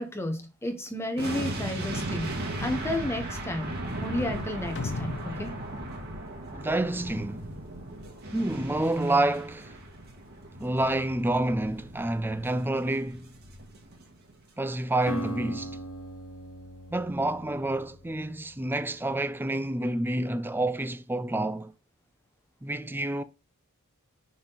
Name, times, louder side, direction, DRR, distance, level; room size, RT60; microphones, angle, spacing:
voice 1, 0.0-5.5, left 1 dB, 10° left, 1.1 m, -32 dB
sound 1, 1.2-14.3 14.6-14.8, right 1 dB, 45° right, 1.8 m, -37 dB
sound 2, 4.8-7.3, left 3 dB, 55° left, 0.7 m, -37 dB
voice 2, 6.5-7.5 8.3-9.7 10.6-13.3 14.6-15.8 16.9-21.7 22.6-23.2, right 1 dB, 10° right, 0.4 m, -28 dB
Acoustic guitar, 15.1-19.2, equal, 80° left, 0.9 m, -40 dB
5.9 x 4.0 x 4.1 m
head